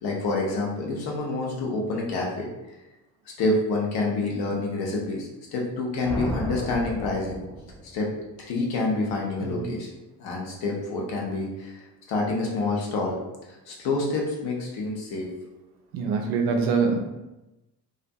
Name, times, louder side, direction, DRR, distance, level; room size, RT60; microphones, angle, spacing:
voice 1, 0.0-2.5 3.4-7.4 7.8-8.1 8.5-9.9 10.2-11.8 12.1-13.2 13.7-15.3, left 2 dB, 50° left, -2 dB, 0.8 m, -27 dB
sound 1, 6.0-8.0, equal, 5° left, 0.4 m, -33 dB
voice 2, 15.9-17.0, right 5 dB, 50° right, 2 dB, 0.5 m, -24 dB
2.5 x 2.4 x 2.3 m, 1.0 s
figure-of-eight pair, 45°, 47 cm